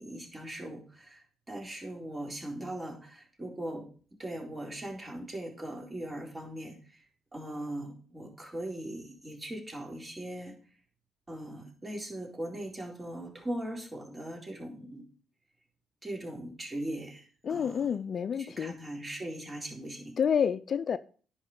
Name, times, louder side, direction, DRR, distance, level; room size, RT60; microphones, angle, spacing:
voice 1, 0.0-3.9 4.2-7.0 7.3-10.5 11.3-15.1 16.0-17.9 18.4-20.1, right 1 dB, 25° right, 4.1 m, -40 dB
voice 2, 17.4-18.7 20.2-21.0, left 7 dB, 50° left, 0.4 m, -29 dB
10.5 x 5.5 x 5.4 m
hypercardioid pair, 50°, 0 cm